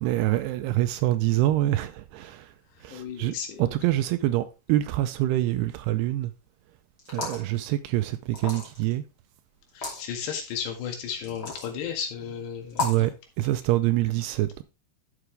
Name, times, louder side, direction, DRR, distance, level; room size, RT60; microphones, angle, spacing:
voice 1, 0.0-2.5 2.8-6.3 7.1-9.0 12.8-13.1 13.4-14.6, right 15 dB, 80° right, 2.5 m, -25 dB
voice 2, 2.9-3.7 9.7-13.1 13.4-13.5, left 7 dB, 75° left, 3.9 m, -34 dB
sound 1, 7.0-7.5 8.3-8.9 9.7-10.0 11.2-11.7 12.7-13.1, left 4 dB, 25° left, 2.9 m, -32 dB
11.0 x 6.8 x 3.3 m
omnidirectional pair, 5.0 m